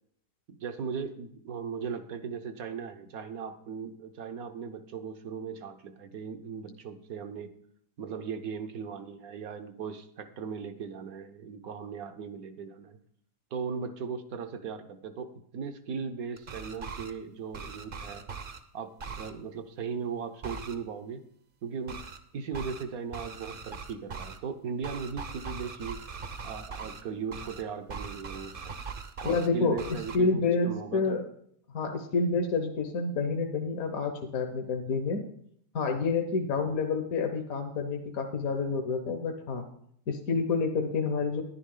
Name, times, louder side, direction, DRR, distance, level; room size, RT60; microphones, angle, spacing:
voice 1, 0.5-7.5 8.0-13.0 13.5-18.2 18.7-21.2 21.6-22.0 22.3-26.0 26.4-28.7 29.2-31.2, right 6 dB, 70° right, 8 dB, 1.3 m, -38 dB
sound 1, 16.4-17.1 17.5-18.6 19.0-19.3 20.4-20.7 21.9-22.2 22.5-22.8 23.1-24.4 24.8-27.0 27.3-27.6 27.9-29.5 29.8-30.2, right 5 dB, 45° right, 0.8 m, -40 dB
voice 2, 29.2-31.3 31.7-35.2 35.7-39.6 40.1-41.4, left 4 dB, 65° left, 4 dB, 1.4 m, -28 dB
10.5 x 10.5 x 3.8 m, 0.65 s
omnidirectional pair, 1.7 m